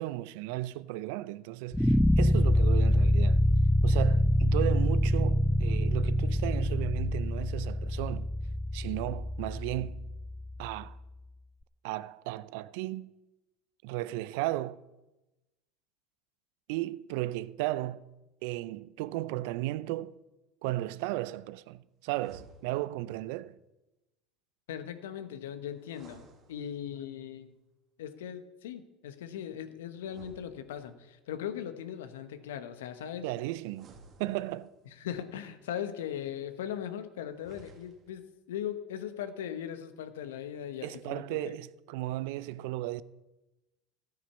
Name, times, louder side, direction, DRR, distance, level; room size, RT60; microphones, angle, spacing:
voice 1, 0.0-3.5 3.8-8.3 8.7-10.0 10.6-11.0 11.8-13.1 13.8-14.8 16.7-18.0 18.4-20.2 20.6-23.6 33.2-34.7 40.8-43.0, right 16 dB, 70° right, 0.5 m, -35 dB
sound 1, 1.7-10.8, equal, 5° left, 0.4 m, -26 dB
sound 2, 22.1-23.1 25.8-27.1 30.0-31.2 33.7-34.9 37.3-38.3, right 3 dB, 45° right, 2.0 m, -56 dB
voice 2, 24.7-27.5 28.0-33.3 34.9-41.5, left 9 dB, 80° left, 1.1 m, -39 dB
13.0 x 9.1 x 6.9 m
hypercardioid pair, 75°, 0 cm